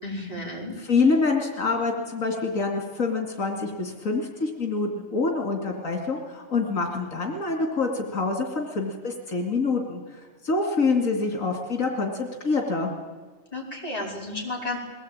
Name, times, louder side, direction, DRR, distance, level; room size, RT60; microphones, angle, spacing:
voice 1, 0.0-0.7 13.5-14.8, left 2 dB, 30° left, -3 dB, 5.2 m, -32 dB
voice 2, 0.8-12.9, left 4 dB, 90° left, 2 dB, 2.9 m, -26 dB
21.5 x 18.0 x 8.9 m, 1.5 s
omnidirectional pair, 1.4 m